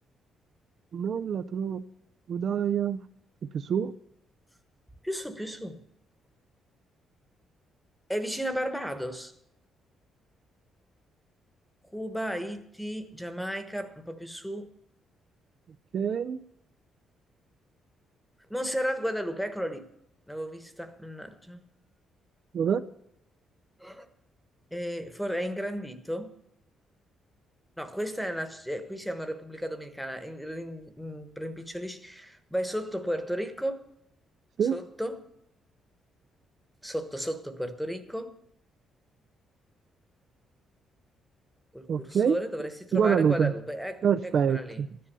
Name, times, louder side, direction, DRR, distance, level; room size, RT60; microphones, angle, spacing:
voice 1, 0.9-1.8 2.3-3.0 3.4-3.9 15.9-16.4 22.5-22.8 34.6-34.8 41.9-42.4 42.9-43.5 44.0-45.0, right 7 dB, 45° right, 0.5 m, -26 dB
voice 2, 5.0-5.8 8.1-9.3 11.9-14.7 18.5-19.9 20.3-21.6 23.8-24.1 24.7-26.3 27.8-33.8 34.7-35.3 36.8-38.4 41.7-44.8, equal, ahead, 1.2 m, -34 dB
13.5 x 10.0 x 6.9 m
cardioid pair, 150°, 0 cm